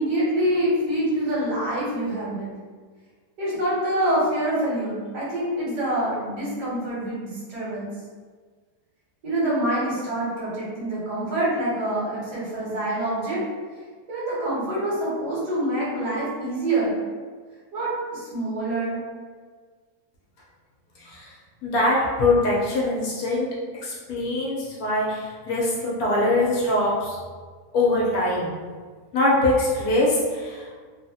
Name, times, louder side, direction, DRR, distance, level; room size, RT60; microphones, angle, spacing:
voice 1, 0.0-2.6 3.4-7.9 9.2-13.4 14.1-16.9 17.7-19.0, right 1 dB, 80° right, -7 dB, 1.7 m, -26 dB
voice 2, 21.6-23.5 23.8-27.2 27.7-28.6 29.1-30.7, left 2 dB, 65° left, -5 dB, 1.2 m, -23 dB
3.3 x 2.4 x 2.7 m, 1.5 s
omnidirectional pair, 1.7 m